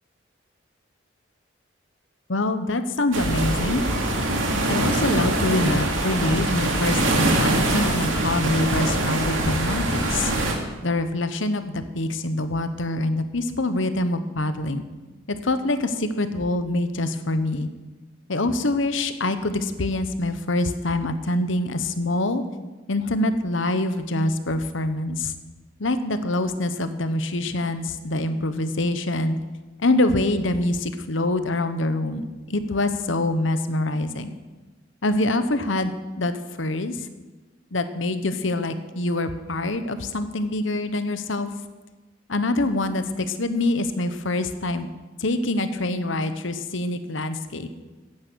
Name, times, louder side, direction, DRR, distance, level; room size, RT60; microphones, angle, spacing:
voice 1, 2.3-3.8 4.7-10.3 10.8-14.8 15.3-17.7 18.3-22.4 22.9-25.3 25.8-29.4 29.8-34.3 35.0-36.3 36.6-37.1 37.7-41.5 42.3-44.9 45.2-47.7, left 2 dB, 70° left, 10 dB, 1.1 m, -25 dB
sound 1, 3.1-10.5, right 1 dB, 80° right, 2.5 m, -23 dB
15.5 x 10.5 x 6.3 m, 1.2 s
head